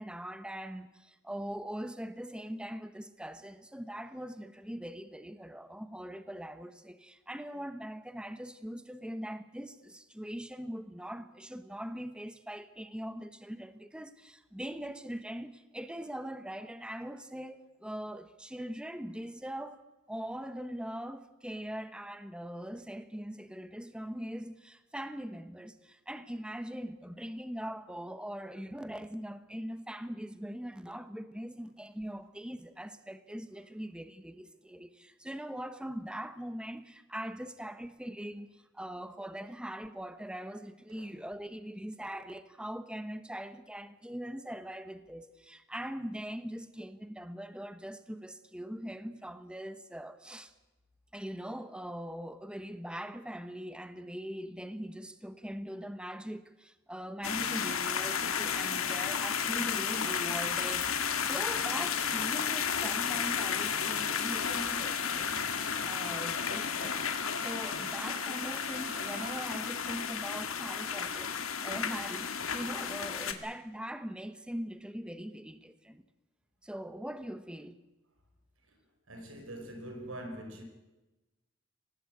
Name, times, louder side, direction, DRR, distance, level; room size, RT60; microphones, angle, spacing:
voice 1, 0.0-19.8 20.1-50.5 51.1-67.1 67.4-71.3 71.6-76.0 76.6-77.8, equal, 5° right, 1.1 m, -41 dB
sound 1, 57.2-73.3, left 7 dB, 85° left, 2.2 m, -33 dB
sound 2, 64.4-69.4, right 6 dB, 35° right, 4.0 m, -49 dB
voice 2, 79.1-80.6, right 1 dB, 85° right, 5.3 m, -43 dB
25.0 x 18.5 x 8.0 m
head